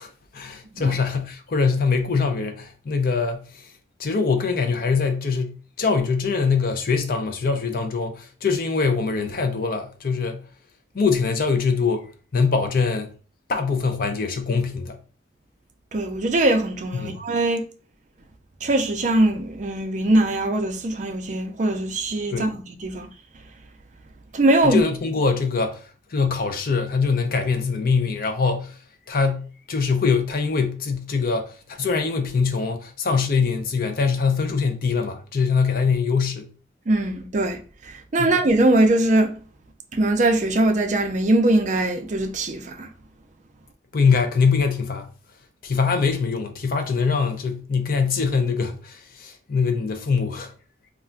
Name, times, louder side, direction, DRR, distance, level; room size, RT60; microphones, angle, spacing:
voice 1, 0.0-3.7 4.0-10.4 10.9-13.1 13.5-15.0 16.9-17.2 22.3-22.5 24.6-28.8 29.1-36.5 38.2-38.3 43.9-45.1 45.6-50.5, left 5 dB, 50° left, 0.4 m, -23 dB
voice 2, 15.9-17.6 18.6-23.1 24.3-24.8 36.9-39.4 39.9-42.9, right 1 dB, 40° right, 0.4 m, -21 dB
2.4 x 2.2 x 3.7 m
head